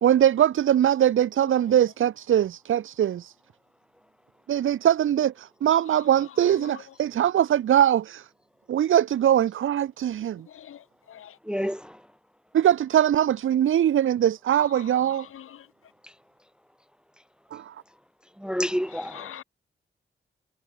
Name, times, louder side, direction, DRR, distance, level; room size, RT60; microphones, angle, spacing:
voice 1, 0.0-3.3 4.5-8.3 8.7-10.5 12.5-15.3 17.5-17.7, right 10 dB, 70° right, 0.7 m, -22 dB
voice 2, 5.9-6.8 10.5-11.4 14.6-15.7 18.9-19.4, left 10 dB, 85° left, 2.0 m, -45 dB
voice 3, 11.5-11.9 18.4-19.3, equal, 5° right, 0.6 m, -28 dB
supercardioid pair, 40°, 21 cm